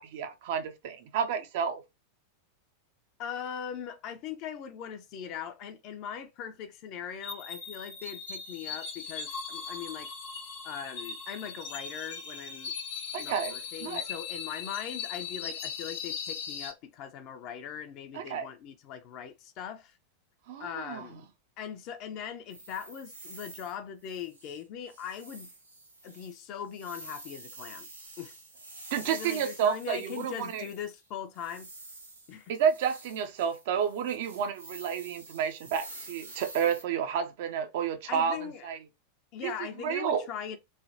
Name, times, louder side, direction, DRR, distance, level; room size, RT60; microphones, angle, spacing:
voice 1, 0.0-1.8 13.1-13.6 13.8-14.0 18.1-18.5 20.5-21.2 28.9-30.6 32.5-38.8 39.4-39.5 39.8-40.2, right 7 dB, 50° right, 0.5 m, -30 dB
voice 2, 3.2-10.1 10.6-12.7 13.2-19.9 20.6-21.3 21.6-25.5 26.0-27.9 28.2-28.3 29.0-31.7 32.3-32.5 38.1-38.7 39.3-40.6, left 8 dB, 40° left, 0.5 m, -40 dB
sound 1, 7.2-16.7, left 6 dB, 55° left, 1.0 m, -39 dB
sound 2, 22.5-23.8 24.0-24.6 24.9-31.0 31.3-36.8, right 2 dB, 80° right, 0.8 m, -48 dB
3.2 x 2.2 x 2.6 m
figure-of-eight pair, 90°, 0 cm